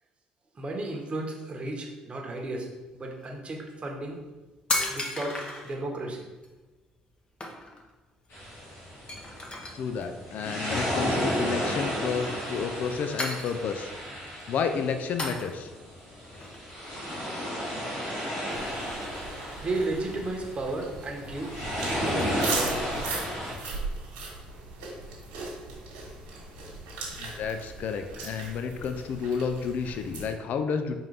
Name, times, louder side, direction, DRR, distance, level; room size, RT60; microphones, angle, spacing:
voice 1, 0.5-4.2 4.9-6.2 18.2-18.4 19.6-23.0, right 2 dB, 35° right, 1 dB, 1.1 m, -34 dB
sound 1, 2.3-2.4 3.0-3.2 4.0-4.1 4.3-5.8 6.4-6.5 6.9-7.1 7.4-7.9 8.2-8.3 8.6-8.7 9.1-10.0 11.2-11.6 12.1-12.8 13.2-13.9 14.3-14.6 15.2-15.8 16.2-17.5 17.9-19.8, left 2 dB, 30° left, 1.0 m, -35 dB
sound 2, 8.3-23.5, equal, 75° left, 1.5 m, -33 dB
voice 2, 9.7-13.9 14.5-15.7 27.1-31.0, left 6 dB, 60° left, 8 dB, 0.4 m, -31 dB
sound 3, 18.5-30.3, right 3 dB, 80° right, 1.3 m, -38 dB
4.3 x 3.7 x 3.3 m, 1.2 s
hypercardioid pair, 60°, 3 cm